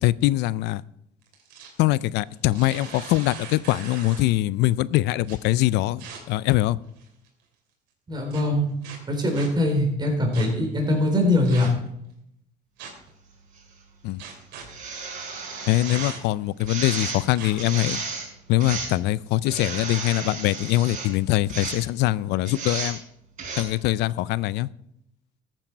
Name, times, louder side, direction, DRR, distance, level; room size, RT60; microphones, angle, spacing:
voice 1, 0.0-0.8 1.8-6.0 6.3-6.8 14.0-14.2 15.7-18.0 18.5-23.0 23.6-24.7, left 16 dB, 85° left, 20 dB, 0.4 m, -23 dB
sound 1, 1.2-1.8 2.3-4.4 5.2-5.4 6.0-6.2 6.9-7.3 8.3-8.4 8.8-9.5 10.3-10.5 11.4-11.9 12.8-13.1 14.2-14.6 15.8-16.4 17.3-17.5, right 6 dB, 85° right, 3.0 m, -40 dB
voice 2, 8.1-8.7 9.1-11.7, left 1 dB, 25° right, 2 dB, 4.0 m, -22 dB
sound 2, 13.6-13.7 14.6-16.1 16.6-17.2 17.6-18.3 18.6-19.0 19.4-21.1 21.5-21.8 22.5-22.9 23.4-23.6, right 4 dB, 50° right, 5.3 m, -33 dB
14.0 x 8.9 x 4.5 m, 0.77 s
cardioid pair, 110°, 17 cm